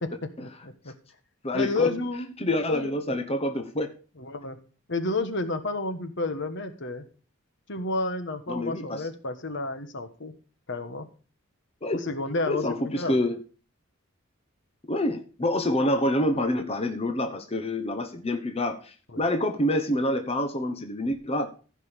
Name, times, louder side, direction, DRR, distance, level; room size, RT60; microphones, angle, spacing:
voice 1, 0.0-0.9 1.5-2.3 2.7-2.9 4.2-4.6 4.9-7.0 7.7-10.3 10.7-11.1 12.0-13.2 19.1-19.2, left 2 dB, 60° left, 9 dB, 1.3 m, -31 dB
voice 2, 1.4-1.9 2.4-3.9 8.5-9.1 11.8-12.1 12.5-13.4 14.9-21.5, left 1 dB, 30° left, 6 dB, 1.1 m, -27 dB
15.0 x 5.4 x 5.2 m, 0.37 s
head